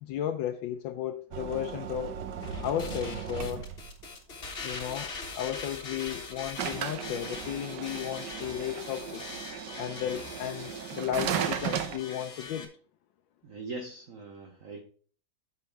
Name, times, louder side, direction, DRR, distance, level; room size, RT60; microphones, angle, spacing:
voice 1, 0.0-2.1 2.6-3.6 4.6-9.2 9.8-12.7, left 11 dB, 80° left, 1.3 m, -34 dB
sound 1, 1.3-4.0 6.6-12.0, right 8 dB, 65° right, 1.4 m, -36 dB
sound 2, 2.4-12.7, left 3 dB, 35° left, 1.5 m, -42 dB
voice 2, 13.4-14.8, right 3 dB, 50° right, 1.3 m, -41 dB
9.7 x 6.6 x 3.4 m
omnidirectional pair, 2.1 m